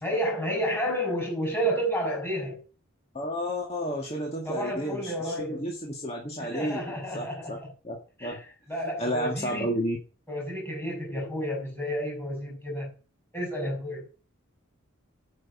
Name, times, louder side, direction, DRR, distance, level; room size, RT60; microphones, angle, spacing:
voice 1, 0.0-2.6 4.4-5.6 6.4-7.5 8.2-8.4 8.7-9.7 10.3-12.9 13.3-14.0, equal, 10° left, 6.3 m, -30 dB
voice 2, 3.1-7.6 7.8-8.4 9.0-10.0, equal, 30° left, 1.9 m, -32 dB
9.3 x 6.4 x 7.1 m
head